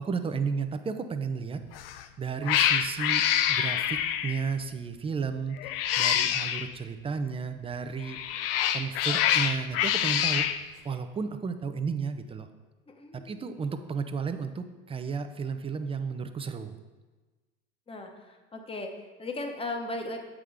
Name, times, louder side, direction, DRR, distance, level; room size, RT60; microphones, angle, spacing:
voice 1, 0.0-3.2 3.5-8.4 8.7-10.5 10.8-12.5 13.1-16.8, right 5 dB, 20° right, 8 dB, 0.6 m, -33 dB
Cat, 1.7-2.0 2.4-4.5 5.6-6.7 8.0-10.6, left 10 dB, 80° left, 0.5 m, -26 dB
voice 2, 12.9-13.4 17.9-20.2, left 2 dB, 20° left, 3 dB, 1.1 m, -37 dB
7.6 x 3.7 x 4.9 m, 1.2 s
hypercardioid pair, 80°, 29 cm